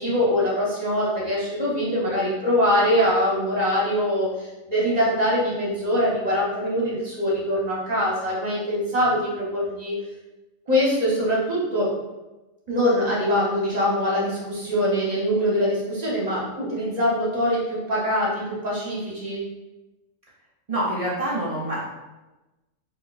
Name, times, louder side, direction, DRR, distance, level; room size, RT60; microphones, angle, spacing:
voice 1, 0.0-9.9 10.7-11.9 12.7-19.4, equal, 40° right, -6 dB, 0.8 m, -23 dB
voice 2, 20.7-21.8, right 1 dB, 65° right, -7 dB, 0.3 m, -26 dB
4.2 x 2.2 x 2.3 m, 1.1 s
omnidirectional pair, 1.4 m